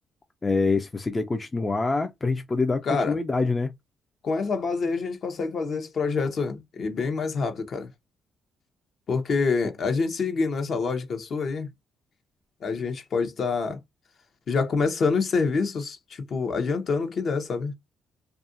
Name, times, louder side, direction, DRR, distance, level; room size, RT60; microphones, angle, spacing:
voice 1, 0.4-3.7, left 3 dB, 25° left, 0.4 m, -25 dB
voice 2, 2.9-3.2 4.2-7.9 9.1-11.7 12.6-13.8 14.5-17.7, left 4 dB, 55° left, 0.7 m, -26 dB
2.7 x 2.4 x 2.5 m
cardioid pair, 90°, 0 cm